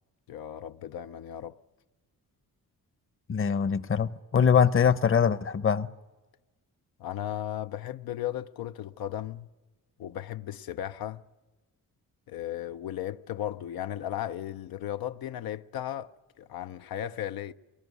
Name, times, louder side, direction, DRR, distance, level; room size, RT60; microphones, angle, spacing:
voice 1, 0.3-1.6 7.0-9.5 10.0-11.2 12.3-17.5, left 11 dB, 85° left, 0.7 m, -36 dB
voice 2, 3.3-5.9, left 7 dB, 35° left, 0.8 m, -23 dB
22.5 x 19.0 x 9.6 m
cardioid pair, 100°, 35 cm